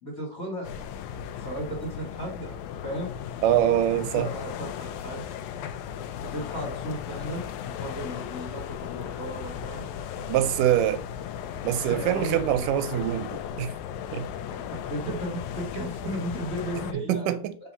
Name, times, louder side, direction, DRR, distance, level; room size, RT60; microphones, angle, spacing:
voice 1, 0.0-3.1 4.1-5.2 6.2-9.9 11.8-12.7 12.9-13.0 14.5-17.4, right 1 dB, 30° left, 2.1 m, -35 dB
sound 1, 0.6-16.9, left 9 dB, 80° left, 1.8 m, -36 dB
voice 2, 3.4-4.3 10.3-11.0 11.6-13.7 14.1-14.3 17.1-17.6, right 12 dB, 85° right, 2.2 m, -24 dB
4.7 x 4.1 x 5.4 m
omnidirectional pair, 3.7 m